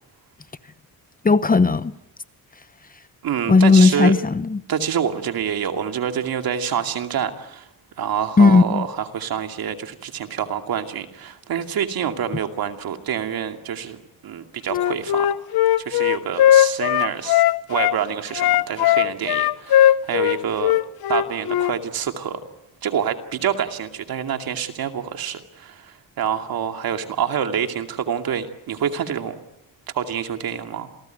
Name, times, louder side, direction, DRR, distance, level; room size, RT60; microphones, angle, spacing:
voice 1, 1.2-1.9 3.5-4.6 8.4-8.8, left 4 dB, 25° left, 0.9 m, -15 dB
voice 2, 3.2-4.1 4.7-7.7 8.0-14.0 14.2-15.3 15.8-17.4 17.7-20.7 21.1-22.4 22.8-29.3 29.9-30.9, right 8 dB, 75° right, 2.5 m, -27 dB
Wind instrument woodwind instrument, 14.7-18.0 18.3-21.7, left 12 dB, 80° left, 0.9 m, -18 dB
27.5 x 19.5 x 9.2 m
cardioid pair, 95°, 36 cm